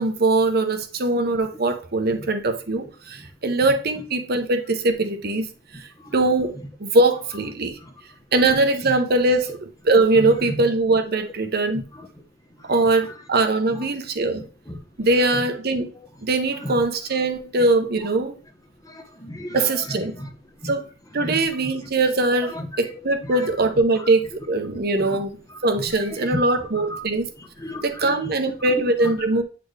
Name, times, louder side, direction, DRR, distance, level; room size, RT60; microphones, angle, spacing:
voice 1, 0.0-5.5 5.7-6.5 6.8-7.7 8.3-11.8 12.7-14.4 15.0-15.9 16.2-18.3 19.5-20.1 20.6-20.8 21.1-25.4 25.6-27.3 27.8-29.4, right 2 dB, 55° right, 0.9 m, -21 dB
voice 2, 10.2-10.6 11.9-12.1 12.6-12.8 13.7-13.9 14.7-14.8 15.3-15.5 16.6-16.8 18.8-19.6 20.2-20.3 20.6-20.7 21.2-21.9 22.4-22.7 23.2-23.5 25.0-25.2 25.5-25.6 26.0-26.4 26.7-27.0 27.4-28.7 29.0-29.1, left 1 dB, 20° left, 1.0 m, -34 dB
8.4 x 4.3 x 3.2 m
head